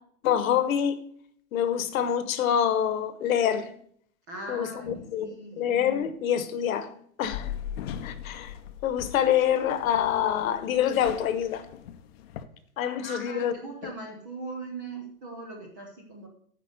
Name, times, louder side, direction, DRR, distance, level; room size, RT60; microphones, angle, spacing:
voice 1, 0.2-1.0 1.5-3.7 4.5-6.9 7.2-7.5 8.0-8.5 8.8-11.6 12.8-13.5, left 9 dB, 65° left, 1.2 m, -26 dB
voice 2, 4.3-5.7 13.0-16.3, right 2 dB, 15° right, 0.4 m, -40 dB
sound 1, 7.2-12.5, left 9 dB, 45° left, 0.7 m, -40 dB
9.3 x 4.9 x 6.4 m
supercardioid pair, 160°, 44 cm